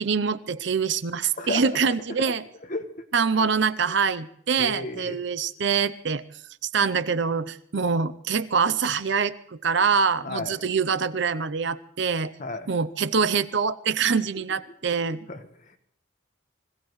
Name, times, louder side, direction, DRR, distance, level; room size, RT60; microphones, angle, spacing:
voice 1, 0.0-2.4 3.1-6.2 6.6-12.3 12.7-15.2, right 5 dB, 60° right, 14 dB, 0.6 m, -25 dB
voice 2, 1.4-2.3 2.6-2.9 3.3-3.5 4.6-5.2 10.2-10.5 12.4-12.7 14.4-14.5 15.3-15.8, left 2 dB, 40° left, 7 dB, 1.3 m, -34 dB
25.5 x 16.5 x 3.1 m, 0.67 s
head